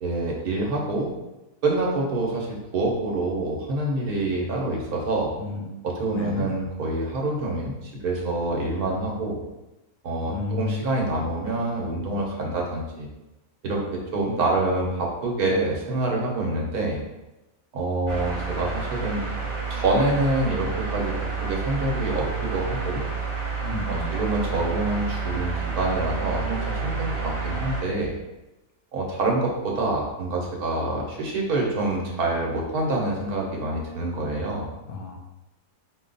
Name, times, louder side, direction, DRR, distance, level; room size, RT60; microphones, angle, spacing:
voice 1, 0.0-1.1 1.6-5.3 5.8-9.4 10.0-13.1 13.6-17.0 17.7-19.2 19.7-21.1 21.4-23.0 23.9-26.6 26.8-28.2 28.9-34.7, right 2 dB, 65° right, -1 dB, 1.3 m, -26 dB
voice 2, 5.3-5.8 6.1-6.5 10.2-10.8 23.6-24.1 34.8-35.2, left 4 dB, 70° left, 1 dB, 1.0 m, -31 dB
sound 1, 18.1-27.8, right 5 dB, 30° right, 0.6 m, -29 dB
4.9 x 2.3 x 3.9 m, 0.99 s
omnidirectional pair, 1.8 m